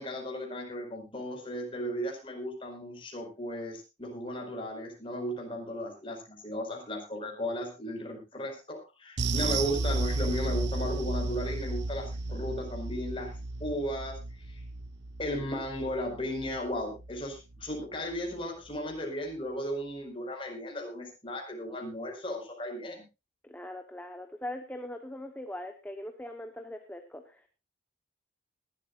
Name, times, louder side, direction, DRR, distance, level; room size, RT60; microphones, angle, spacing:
voice 1, 0.0-13.3 13.6-14.6 15.2-23.0, equal, 30° left, 2 dB, 5.1 m, -35 dB
sound 1, 9.2-17.8 18.1-18.3 18.7-18.8, right 3 dB, 65° right, 0.9 m, -34 dB
voice 2, 23.4-27.5, left 1 dB, 10° left, 5 dB, 1.1 m, -41 dB
21.5 x 12.5 x 2.5 m, 0.27 s
head